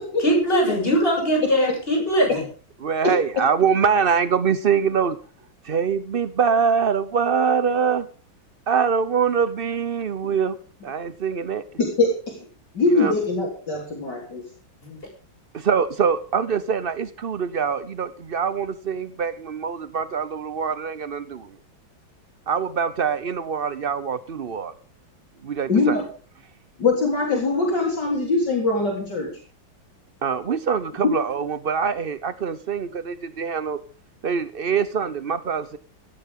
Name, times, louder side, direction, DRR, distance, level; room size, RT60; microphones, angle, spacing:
voice 1, 0.2-2.4 14.8-15.0, right 1 dB, 25° left, 0 dB, 7.0 m, -21 dB
voice 2, 2.8-5.2 5.6-8.0 8.7-10.6 10.8-11.6 12.9-13.1 15.5-21.5 22.5-24.7 25.4-26.0 30.2-33.8 34.2-35.8, right 6 dB, 75° right, 14 dB, 0.5 m, -24 dB
voice 3, 12.0-12.4 12.7-14.4 25.7-26.0 26.8-29.3 31.0-31.1, left 3 dB, 55° left, 0 dB, 4.1 m, -22 dB
17.0 x 14.0 x 3.7 m, 0.37 s
omnidirectional pair, 2.2 m